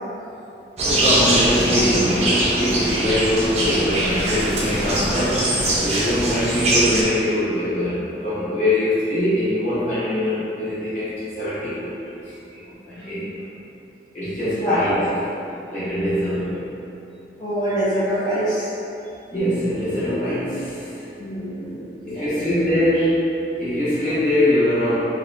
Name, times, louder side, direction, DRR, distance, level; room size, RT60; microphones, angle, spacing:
voice 1, 0.8-13.5 14.1-15.1 15.7-16.7 19.3-21.1 22.0-25.0, left 1 dB, 40° left, -12 dB, 1.3 m, -23 dB
sound 1, 0.8-7.0, right 1 dB, 35° right, 0.5 m, -21 dB
voice 2, 14.4-15.1 17.4-18.7 21.2-22.5, equal, 20° left, -16 dB, 0.7 m, -25 dB
3.8 x 2.8 x 2.7 m, 2.8 s
head